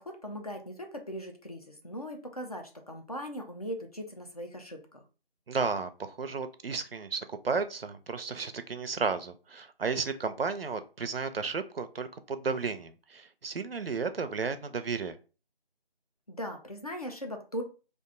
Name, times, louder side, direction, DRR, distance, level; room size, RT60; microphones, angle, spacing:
voice 1, 0.0-5.0 16.3-17.6, equal, 40° left, 3 dB, 0.5 m, -39 dB
voice 2, 5.5-15.1, right 4 dB, 70° right, 10 dB, 0.5 m, -33 dB
2.5 x 2.2 x 3.7 m, 0.34 s
figure-of-eight pair, 160°, 30 cm